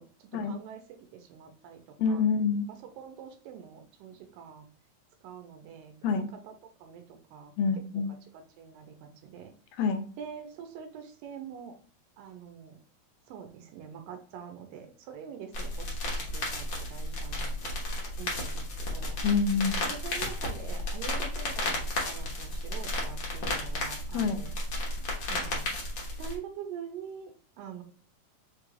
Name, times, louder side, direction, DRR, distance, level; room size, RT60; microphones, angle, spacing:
voice 1, 0.0-2.2 2.8-4.7 5.2-6.5 6.8-7.5 8.3-9.5 10.2-11.8 12.2-12.8 13.3-19.2 19.9-24.5 25.3-25.8 26.2-27.3 27.6-27.8, right 7 dB, 80° right, 5 dB, 2.3 m, -45 dB
voice 2, 2.0-2.7 6.0-6.3 7.6-8.1 9.8-10.1 19.2-19.8 24.1-24.4, left 5 dB, 80° left, 6 dB, 2.3 m, -27 dB
sound 1, 15.5-26.4, left 1 dB, 65° left, 1.2 m, -33 dB
6.1 x 3.2 x 2.3 m, 0.42 s
omnidirectional pair, 4.1 m